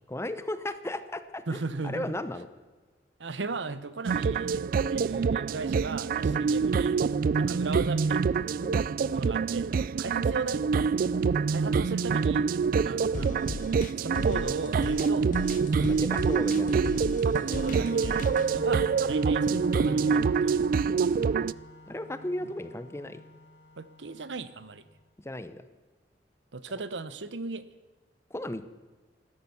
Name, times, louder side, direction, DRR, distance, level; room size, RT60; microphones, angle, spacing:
voice 1, 0.1-1.4 1.8-2.5 6.3-6.5 8.6-8.8 15.8-17.0 21.9-23.2 25.2-25.6 28.3-28.7, left 1 dB, 15° left, 12 dB, 0.8 m, -35 dB
voice 2, 1.5-2.2 3.2-7.0 7.4-8.3 9.1-10.7 11.5-12.5 12.8-13.5 14.0-15.3 16.7-20.6 23.8-24.8 26.5-27.6, right 3 dB, 80° right, 14 dB, 0.9 m, -37 dB
sound 1, 4.0-21.5, right 5 dB, 50° right, 0.3 m, -26 dB
sound 2, 13.1-18.5, left 3 dB, 45° left, 0.5 m, -37 dB
Organ, 17.4-24.9, left 1 dB, 75° left, 2.0 m, -46 dB
13.0 x 12.5 x 7.1 m, 1.3 s
head